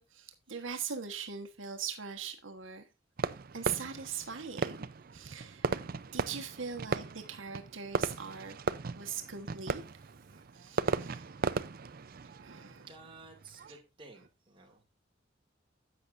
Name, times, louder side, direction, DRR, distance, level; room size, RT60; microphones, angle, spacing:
voice 1, 0.0-2.9 3.5-4.9 5.1-5.7 6.1-8.6 9.0-9.8 10.2-11.2 12.4-12.9, right 6 dB, 90° right, 1.3 m, -41 dB
Fireworks, 3.2-13.8, right 4 dB, 50° right, 0.5 m, -37 dB
voice 2, 12.2-14.8, right 3 dB, 25° right, 2.3 m, -55 dB
10.5 x 8.2 x 2.6 m
head